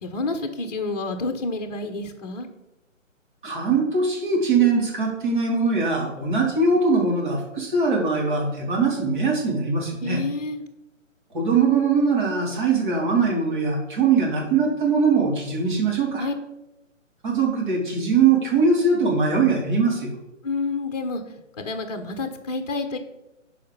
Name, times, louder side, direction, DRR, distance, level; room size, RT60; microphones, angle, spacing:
voice 1, 0.0-2.5 10.0-10.6 16.2-16.3 20.4-21.2 21.6-23.0, left 3 dB, 30° left, 6 dB, 0.9 m, -29 dB
voice 2, 3.4-10.2 11.3-16.3 17.2-20.1, right 4 dB, 40° right, -2 dB, 3.5 m, -21 dB
12.0 x 5.1 x 5.5 m, 0.94 s
figure-of-eight pair, 140°, 39 cm